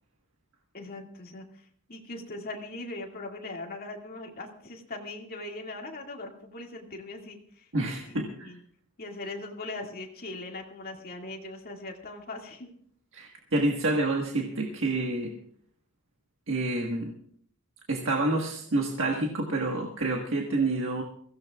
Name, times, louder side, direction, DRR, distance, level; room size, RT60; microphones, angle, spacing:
voice 1, 0.7-8.6 9.0-12.7, left 2 dB, 45° left, 1 dB, 2.2 m, -40 dB
voice 2, 7.7-8.5 13.1-15.3 16.5-17.1 17.9-21.0, right 2 dB, 60° right, 1 dB, 1.5 m, -28 dB
23.0 x 16.5 x 2.4 m, 0.62 s
head